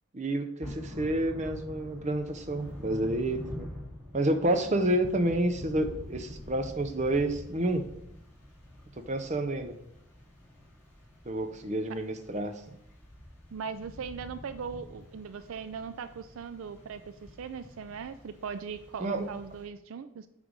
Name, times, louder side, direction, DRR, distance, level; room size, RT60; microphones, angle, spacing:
voice 1, 0.1-3.7 4.1-7.8 9.1-9.8 11.3-12.5 19.0-19.3, right 1 dB, 35° right, 6 dB, 0.6 m, -29 dB
Thunder / Rain, 0.6-19.6, left 1 dB, 10° left, 2.8 m, -46 dB
voice 2, 13.5-20.3, right 6 dB, 75° right, 11 dB, 0.4 m, -39 dB
8.9 x 3.3 x 5.0 m, 0.78 s
head